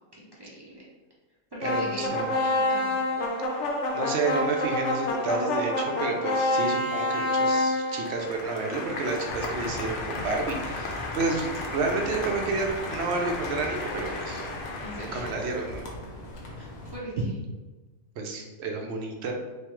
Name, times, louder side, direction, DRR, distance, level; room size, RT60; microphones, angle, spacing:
voice 1, 0.1-0.9 1.5-2.3 2.5-3.0 14.8-15.2 16.5-17.3, equal, 35° right, -6 dB, 0.4 m, -40 dB
sound 1, 1.6-15.8, left 2 dB, 65° left, 0.8 m, -29 dB
voice 2, 1.6-2.3 3.9-14.5 15.0-15.9 18.2-19.3, right 3 dB, 65° right, 2 dB, 0.7 m, -30 dB
sound 2, 9.3-17.0, left 1 dB, 85° left, 1.2 m, -41 dB
3.4 x 3.1 x 3.0 m, 1.2 s
omnidirectional pair, 1.5 m